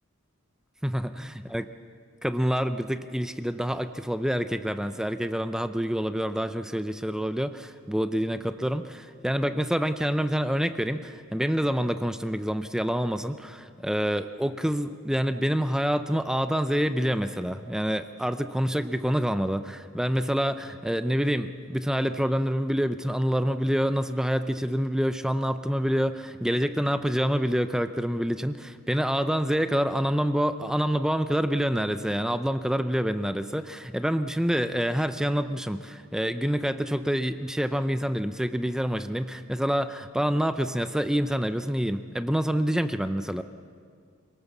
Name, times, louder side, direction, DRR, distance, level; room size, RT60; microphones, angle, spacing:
voice 1, 2.2-43.4, equal, 5° right, 10 dB, 0.5 m, -27 dB
25.5 x 18.5 x 7.2 m, 2.1 s
head